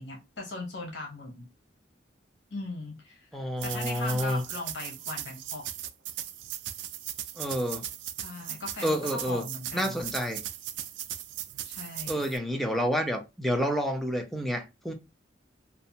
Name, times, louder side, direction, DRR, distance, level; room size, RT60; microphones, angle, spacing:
voice 1, 0.0-1.5 2.5-3.3 3.6-5.6 8.2-10.0 11.6-12.2, left 2 dB, 70° left, 0.8 m, -39 dB
voice 2, 3.3-4.4 7.4-7.9 8.8-9.5 9.7-10.4 12.1-14.9, equal, ahead, 0.5 m, -29 dB
sound 1, 3.6-12.4, right 12 dB, 80° right, 0.3 m, -38 dB
2.6 x 2.1 x 2.6 m
head